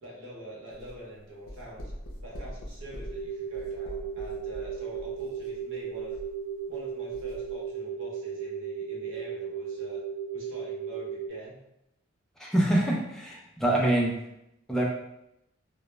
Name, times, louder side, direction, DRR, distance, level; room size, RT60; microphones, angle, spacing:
voice 1, 0.0-1.9 2.2-6.2 6.7-10.0 10.3-11.6, right 1 dB, 70° right, -5 dB, 0.8 m, -45 dB
sound 1, 0.7-6.8 7.1-7.6, equal, 80° left, 0.6 m, -43 dB
sound 2, 3.0-11.3, right 7 dB, 30° left, 0.7 m, -36 dB
voice 2, 12.4-14.1 14.7-14.8, right 1 dB, ahead, -3 dB, 0.3 m, -25 dB
2.1 x 2.0 x 3.0 m, 0.85 s
head